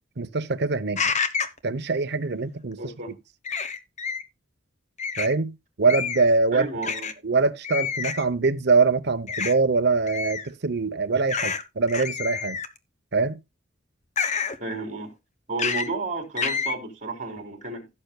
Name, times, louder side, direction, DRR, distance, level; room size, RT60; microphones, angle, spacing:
voice 1, 0.2-1.1 1.6-2.8 5.2-6.7 7.2-12.6 13.1-13.4, right 4 dB, 55° right, 0.8 m, -23 dB
sound 1, 1.0-1.6 3.4-4.2 5.0-5.3 5.9-6.3 6.8-7.1 7.6-8.2 9.3-9.5 10.1-10.5 11.3-11.6 11.9-12.8 14.2-14.6 15.6-15.9 16.4-16.7, left 6 dB, 35° left, 0.9 m, -28 dB
voice 2, 2.8-3.1 6.5-7.2 14.6-15.1 15.5-17.9, right 3 dB, 40° right, 3.5 m, -32 dB
16.5 x 6.6 x 2.2 m
head